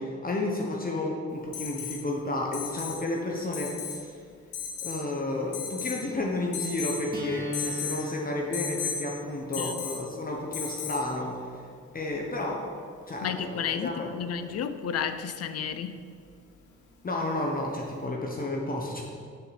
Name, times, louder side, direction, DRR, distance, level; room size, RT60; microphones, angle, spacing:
voice 1, 0.0-4.2 4.8-11.6 11.9-12.7 13.1-14.2 17.0-19.0, left 2 dB, 30° left, -1 dB, 1.2 m, -32 dB
Alarm, 1.5-2.0 2.5-3.0 3.5-4.0 4.5-5.0 5.5-6.0 6.5-7.0 7.5-8.0 8.5-9.0 9.5-10.0 10.5-11.0 12.8-12.9, left 6 dB, 80° left, 1.4 m, -34 dB
sound 1, 7.1-13.1, left 1 dB, 30° right, 2.5 m, -40 dB
voice 2, 13.2-16.0, left 7 dB, 55° left, 10 dB, 0.6 m, -32 dB
7.1 x 5.7 x 7.1 m, 2.2 s
cardioid pair, 90°, 30 cm